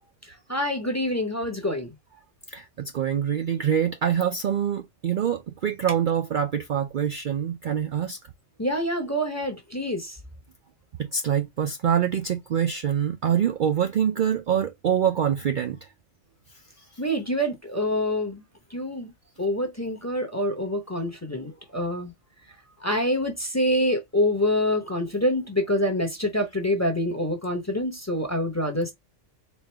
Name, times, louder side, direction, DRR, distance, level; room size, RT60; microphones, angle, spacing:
voice 1, 0.5-1.9 8.6-10.2 17.0-18.4 18.7-19.1 19.4-22.1 22.8-28.9, left 1 dB, 15° left, 0.8 m, -26 dB
voice 2, 2.5-8.2 11.0-15.8, right 8 dB, 60° right, 0.5 m, -25 dB
4.3 x 2.5 x 3.3 m
omnidirectional pair, 1.3 m